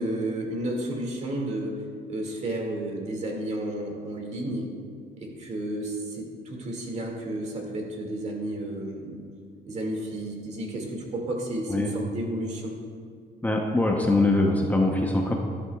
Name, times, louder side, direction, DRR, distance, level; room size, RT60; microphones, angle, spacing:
voice 1, 0.0-1.8 2.1-4.7 5.2-9.2 9.7-12.8, right 1 dB, 40° right, 0 dB, 2.2 m, -32 dB
voice 2, 13.4-15.3, left 2 dB, 10° left, 0 dB, 0.8 m, -23 dB
12.5 x 11.5 x 2.4 m, 2.2 s
cardioid pair, 110°, 17 cm